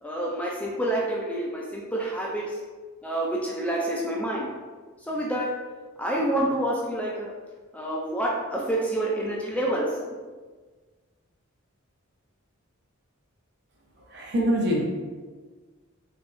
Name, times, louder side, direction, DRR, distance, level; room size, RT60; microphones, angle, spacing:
voice 1, 0.0-2.6 3.0-4.5 5.0-5.5 6.0-7.3 7.7-10.2, right 1 dB, 5° left, -4 dB, 0.3 m, -28 dB
voice 2, 14.1-14.8, equal, 50° right, -2 dB, 0.8 m, -24 dB
3.4 x 3.4 x 2.6 m, 1.4 s
head